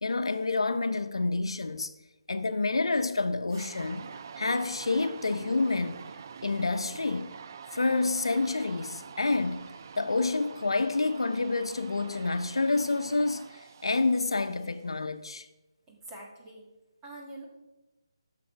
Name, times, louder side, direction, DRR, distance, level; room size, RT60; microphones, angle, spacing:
voice 1, 0.0-1.9 2.3-4.0 4.4-6.0 6.4-7.4 7.7-15.5, left 3 dB, 80° left, 0.8 m, -28 dB
sound 1, 3.5-14.8, right 6 dB, 40° right, 0.4 m, -46 dB
voice 2, 15.9-16.7 17.0-17.4, right 1 dB, 15° right, 2.0 m, -45 dB
11.0 x 6.8 x 4.7 m
figure-of-eight pair, 160°, 3 cm